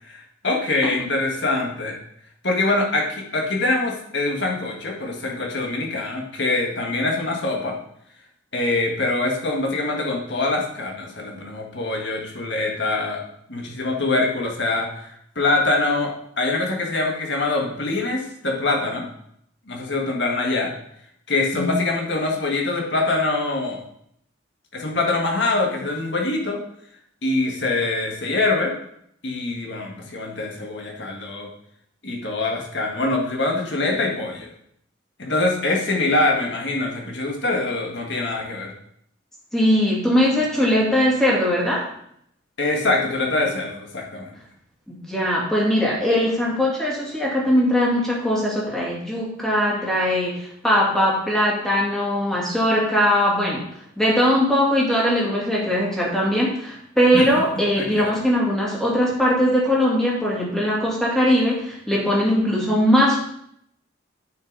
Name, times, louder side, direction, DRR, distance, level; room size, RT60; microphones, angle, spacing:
voice 1, 0.1-2.0 2.4-7.7 8.5-13.2 13.5-15.1 15.3-19.1 19.7-20.7 21.3-23.8 24.7-26.6 27.2-28.7 29.2-31.5 32.0-34.5 35.2-38.7 42.6-44.3 57.1-57.2 57.8-58.1, left 2 dB, 60° left, 0 dB, 1.8 m, -24 dB
voice 2, 39.5-41.8 44.9-53.6 54.0-63.2, equal, 5° left, -5 dB, 2.3 m, -20 dB
8.8 x 6.1 x 4.0 m, 0.70 s
head